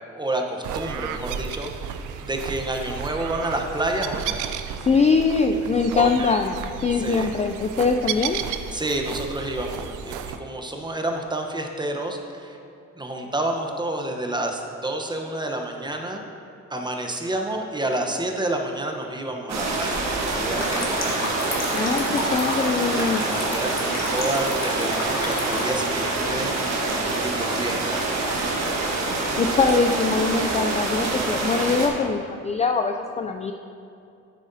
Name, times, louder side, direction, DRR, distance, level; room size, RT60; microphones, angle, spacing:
voice 1, 0.1-4.4 5.9-6.3 7.0-7.3 8.7-12.6 13.0-16.2 16.7-21.3 23.0-28.0, right 1 dB, 15° right, 3 dB, 0.9 m, -29 dB
sound 1, 0.6-10.4, right 8 dB, 85° right, 0.5 m, -33 dB
voice 2, 4.8-8.4 21.7-23.2 29.4-33.5, left 4 dB, 25° left, 5 dB, 0.3 m, -22 dB
sound 2, 19.5-31.9, right 2 dB, 65° right, 1.5 m, -26 dB
sound 3, 20.5-25.7, left 2 dB, 60° left, 1.7 m, -32 dB
9.9 x 8.2 x 2.7 m, 2.6 s
cardioid pair, 90°, 30 cm